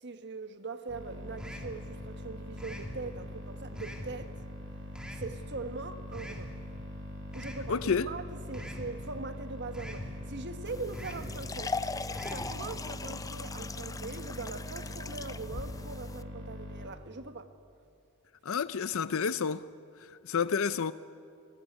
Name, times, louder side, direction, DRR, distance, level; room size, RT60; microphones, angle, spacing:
voice 1, 0.0-4.4 5.2-6.5 7.3-11.8 12.3-17.5, right 3 dB, 55° right, 1.4 m, -41 dB
sound 1, 0.9-16.9, left 1 dB, 70° right, 7.1 m, -43 dB
sound 2, 1.4-1.8 2.6-3.0 3.8-4.1 5.0-5.3 6.1-6.5 7.3-7.7 8.5-8.9 9.7-10.1 10.9-11.3 12.1-12.5, equal, 5° right, 2.7 m, -43 dB
voice 2, 7.7-8.1 18.4-19.6 20.0-20.9, left 6 dB, 65° left, 0.6 m, -30 dB
sound 3, 10.7-16.2, left 3 dB, 15° left, 0.6 m, -39 dB
29.0 x 19.0 x 9.8 m
head